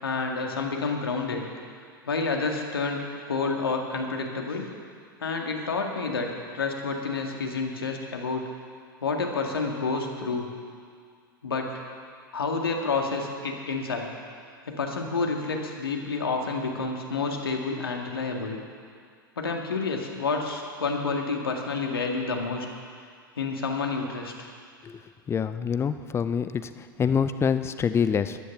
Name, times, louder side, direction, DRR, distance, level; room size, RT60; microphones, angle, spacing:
voice 1, 0.0-1.5 2.1-4.7 5.2-8.5 9.0-10.5 11.4-11.7 12.3-14.1 14.7-18.6 19.4-22.7 23.4-24.5, left 4 dB, 80° left, 2 dB, 2.0 m, -29 dB
voice 2, 25.3-28.4, left 7 dB, 20° left, 11 dB, 0.7 m, -26 dB
14.0 x 10.0 x 7.1 m, 2.1 s
figure-of-eight pair, 90°, 12 cm